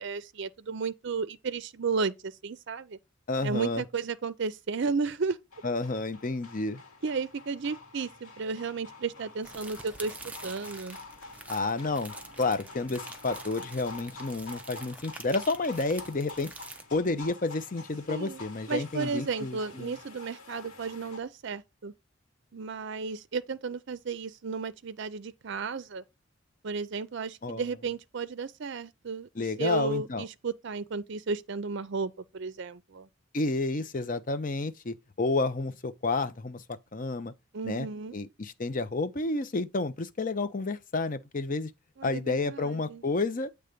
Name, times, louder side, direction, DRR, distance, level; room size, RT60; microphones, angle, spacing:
voice 1, 0.0-3.0 3.4-5.4 7.0-11.0 18.1-18.4 18.7-21.9 22.5-26.0 26.6-29.3 29.6-33.1 37.5-38.1 42.0-43.0, right 4 dB, 55° right, 0.5 m, -33 dB
voice 2, 3.3-3.8 5.6-6.8 11.5-16.5 16.9-19.9 27.4-27.6 29.4-30.2 33.3-37.3 37.6-37.9 38.1-41.7 42.0-43.5, left 3 dB, 40° left, 0.6 m, -30 dB
sound 1, 5.5-21.2, left 3 dB, 80° left, 2.2 m, -47 dB
sound 2, 9.4-16.8, right 2 dB, 5° right, 0.5 m, -46 dB
8.0 x 3.4 x 5.1 m
head